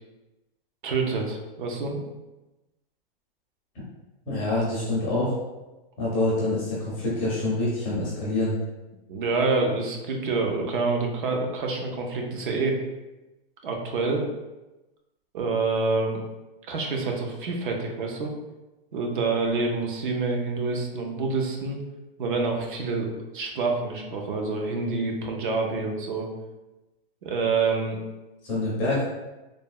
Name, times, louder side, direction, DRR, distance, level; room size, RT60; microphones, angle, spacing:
voice 1, 0.8-2.0 9.1-12.8 13.6-14.3 15.3-16.2 16.7-18.3 18.9-21.8 22.2-26.3 27.2-28.0, right 3 dB, 60° right, 2 dB, 0.6 m, -27 dB
voice 2, 4.2-5.3 6.0-8.6 28.4-29.0, left 2 dB, 15° left, -6 dB, 0.4 m, -26 dB
3.3 x 2.0 x 2.3 m, 1.1 s
hypercardioid pair, 160°, 29 cm